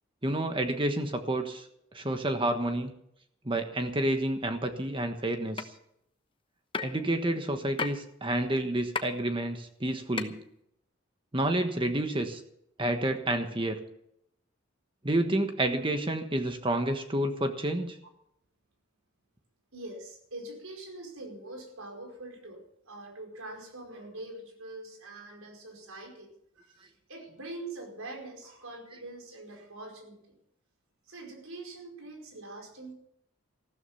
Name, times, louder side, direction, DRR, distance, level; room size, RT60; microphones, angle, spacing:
voice 1, 0.2-1.7 1.9-2.9 3.4-5.7 6.8-10.4 11.3-12.4 12.8-13.8 15.0-18.0, right 1 dB, 25° right, 6 dB, 1.3 m, -29 dB
sound 1, 5.6-5.7 6.7-7.0 7.8-8.0 9.0-9.1 10.2-10.3, left 4 dB, 25° left, 1.0 m, -31 dB
voice 2, 19.7-26.3 26.5-30.4 31.1-32.9, right 2 dB, 90° right, 3 dB, 5.1 m, -44 dB
15.0 x 13.5 x 5.8 m, 0.72 s
head